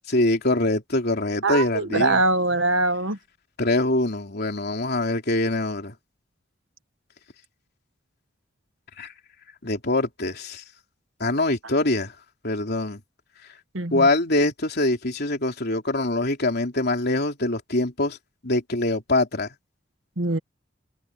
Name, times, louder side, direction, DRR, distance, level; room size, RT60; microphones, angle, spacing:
voice 1, 0.1-2.2 3.6-5.9 9.0-9.1 9.6-10.6 11.2-12.1 12.4-13.0 13.9-18.2 18.4-19.5, left 2 dB, 55° left, 3.5 m, -24 dB
voice 2, 1.4-3.2 13.7-14.1 20.2-20.4, right 2 dB, 80° right, 1.6 m, -23 dB
head